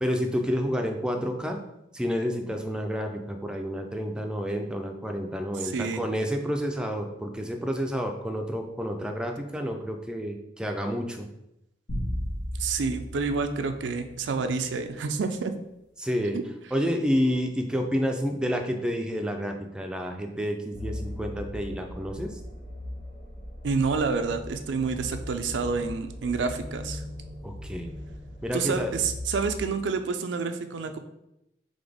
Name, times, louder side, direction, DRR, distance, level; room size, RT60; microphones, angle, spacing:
voice 1, 0.0-1.6 1.9-11.3 16.0-16.4 16.7-22.4 27.4-27.9 28.4-28.9, equal, 5° right, 3 dB, 0.4 m, -29 dB
voice 2, 5.6-6.0 12.6-15.5 23.6-27.0 28.5-31.0, right 4 dB, 90° right, 8 dB, 0.4 m, -28 dB
sound 1, 11.9-14.4, equal, 80° left, 1.6 m, -34 dB
sound 2, 20.7-29.7, left 1 dB, 35° left, 1.1 m, -39 dB
3.9 x 3.3 x 3.5 m, 0.85 s
head